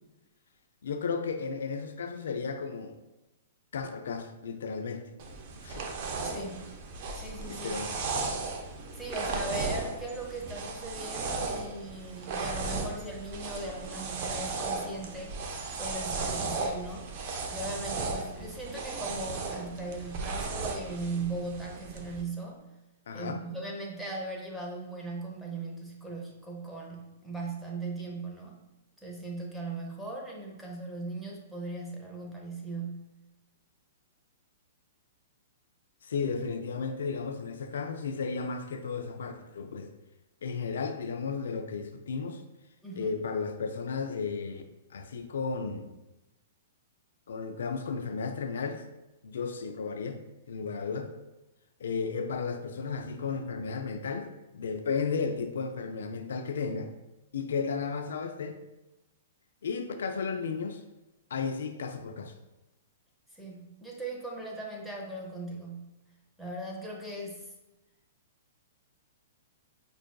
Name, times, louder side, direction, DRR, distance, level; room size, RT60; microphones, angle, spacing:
voice 1, 0.8-3.0 3.7-5.0 5.6-5.9 7.5-7.9 23.1-23.4 36.0-39.9 40.4-42.4 43.0-44.6 44.9-45.9 47.3-48.8 49.2-51.1 51.8-54.3 54.5-56.9 57.3-58.6 59.6-60.8 61.3-62.3, left 5 dB, 80° left, 7 dB, 0.3 m, -34 dB
sound 1, 5.2-22.2, right 3 dB, 45° right, 0.5 m, -36 dB
voice 2, 6.2-6.7 7.1-7.8 8.9-15.4 15.7-17.1 17.5-22.6 23.1-28.6 29.0-33.1 42.8-43.2 63.3-65.9 66.4-67.4, right 2 dB, ahead, -3 dB, 0.7 m, -38 dB
5.2 x 2.5 x 2.2 m, 1.0 s
hypercardioid pair, 140°, 0 cm